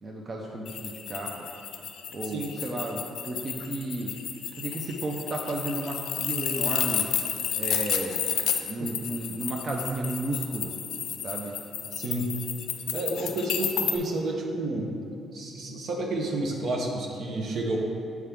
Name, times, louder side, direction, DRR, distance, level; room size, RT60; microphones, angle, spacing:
voice 1, 0.0-1.5 2.1-4.1 4.6-7.1 7.5-8.2 8.6-10.7 11.2-11.6, right 2 dB, 40° right, -1 dB, 0.6 m, -33 dB
sound 1, 0.7-14.0, left 9 dB, 80° left, 0.4 m, -31 dB
voice 2, 11.9-12.3 12.9-14.9 15.3-17.8, right 2 dB, 65° right, 0 dB, 0.9 m, -30 dB
7.1 x 4.7 x 3.5 m, 2.6 s
cardioid pair, 90°, 0 cm